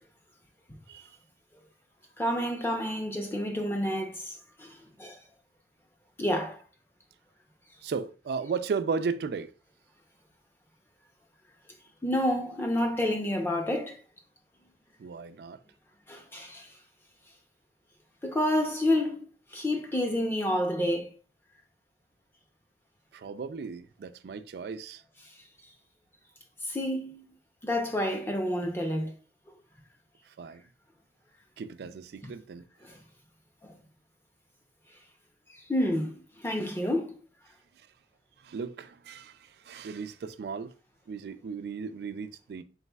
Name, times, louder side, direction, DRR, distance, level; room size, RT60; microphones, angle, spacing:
voice 1, 2.2-4.7 5.0-5.2 6.2-6.6 12.0-14.0 16.1-16.7 18.2-19.2 19.5-21.1 26.7-27.2 27.6-29.1 32.8-33.0 33.6-33.7 35.7-37.2, left 1 dB, 15° left, 0.6 m, -29 dB
voice 2, 7.8-9.5 15.0-15.6 23.1-25.0 30.4-30.6 31.6-32.6 38.4-40.7 41.1-42.6, right 5 dB, 65° right, 0.3 m, -35 dB
4.1 x 4.0 x 2.2 m
head